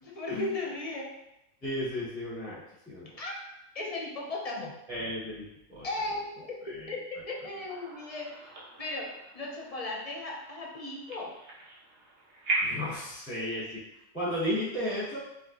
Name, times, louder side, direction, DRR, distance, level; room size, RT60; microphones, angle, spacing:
voice 1, 0.0-1.2 3.2-3.4 3.7-4.8 5.8-6.6 6.9-11.4, left 2 dB, 40° left, -2 dB, 0.6 m, -36 dB
voice 2, 1.6-3.1 4.9-5.9 6.6-6.9 12.6-13.8 14.1-15.2, left 1 dB, 10° left, -8 dB, 0.9 m, -34 dB
sound 1, 7.7-13.0, right 2 dB, 55° right, 1.2 m, -38 dB
4.9 x 2.9 x 2.9 m, 0.85 s
omnidirectional pair, 1.5 m